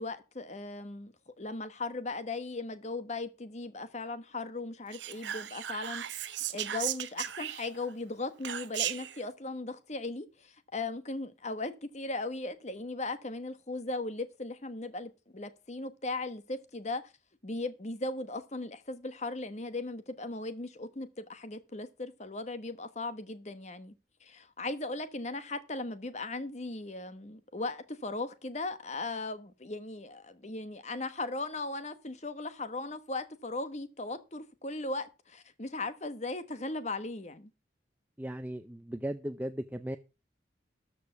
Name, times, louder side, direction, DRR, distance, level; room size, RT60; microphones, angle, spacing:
voice 1, 0.0-17.0 17.4-23.9 24.2-37.5, left 2 dB, 40° left, 1.2 m, -38 dB
Whispering, 4.9-7.9 8.4-9.2, right 11 dB, 80° right, 0.8 m, -36 dB
voice 2, 38.2-40.0, right 1 dB, 10° right, 0.5 m, -37 dB
13.0 x 5.0 x 7.1 m
head